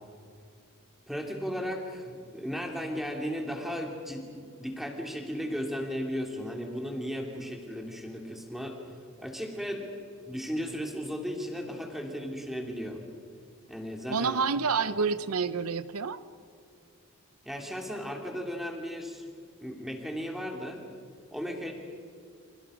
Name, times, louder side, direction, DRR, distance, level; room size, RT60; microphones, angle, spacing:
voice 1, 1.1-8.8 9.2-9.9 10.2-13.0 13.7-14.4 17.4-19.2 19.6-20.9 21.3-21.7, equal, ahead, 1 dB, 3.1 m, -35 dB
voice 2, 14.1-16.2, right 5 dB, 75° right, 13 dB, 0.7 m, -28 dB
30.0 x 27.0 x 5.2 m, 2.3 s
head